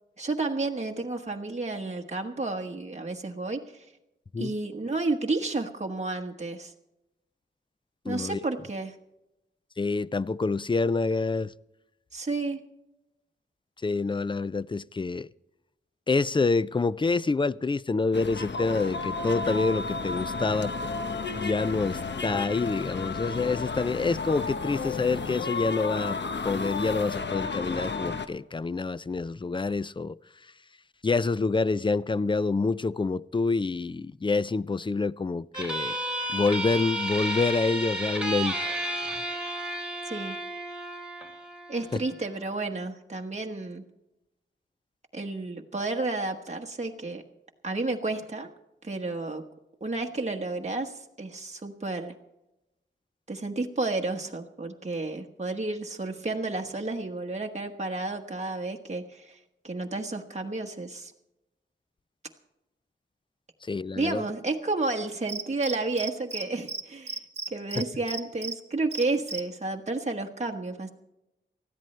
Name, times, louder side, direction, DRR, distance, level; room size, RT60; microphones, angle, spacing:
voice 1, 0.2-3.8 4.4-6.7 8.0-8.9 12.1-12.6 40.0-40.4 41.7-43.8 45.1-47.2 47.6-48.5 48.8-49.4 49.8-52.1 53.3-59.4 59.6-61.1 64.0-67.2 67.5-70.9, right 3 dB, 35° right, 1.3 m, -31 dB
voice 2, 8.1-8.4 9.8-11.5 13.8-15.3 16.1-20.7 21.3-26.2 26.4-30.2 31.0-36.0 36.3-38.6 41.9-42.0 63.7-64.2 67.8-67.9, left 3 dB, 25° left, 0.4 m, -27 dB
sound 1, 18.1-28.3, left 4 dB, 60° left, 1.0 m, -32 dB
sound 2, 35.5-42.6, right 1 dB, 5° right, 3.5 m, -33 dB
Cricket, 65.3-66.4 66.7-66.8 67.1-68.5 68.9-69.4, right 4 dB, 55° right, 1.2 m, -34 dB
19.5 x 14.0 x 3.3 m
wide cardioid pair, 80°, 20 cm